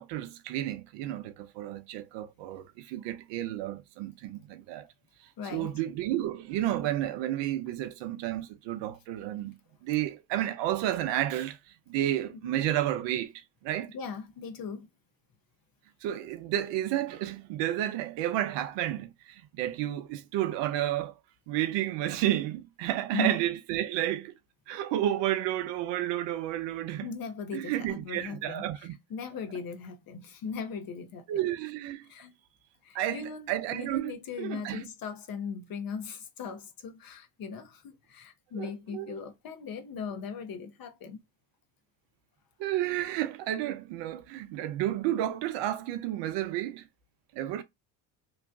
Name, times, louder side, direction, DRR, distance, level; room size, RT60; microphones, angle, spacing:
voice 1, 0.0-4.9 5.5-11.6 11.9-13.9 16.0-21.1 21.5-24.3 24.7-27.1 27.5-28.9 31.3-32.1 32.9-34.9 38.6-39.1 42.6-46.8 47.3-47.6, right 13 dB, 60° right, 0.6 m, -31 dB
voice 2, 5.4-5.7 12.3-12.5 13.9-14.9 23.1-23.4 27.0-31.3 32.0-32.4 32.8-41.2, left 6 dB, 45° left, 1.0 m, -39 dB
3.1 x 2.2 x 2.4 m
hypercardioid pair, 75°, 49 cm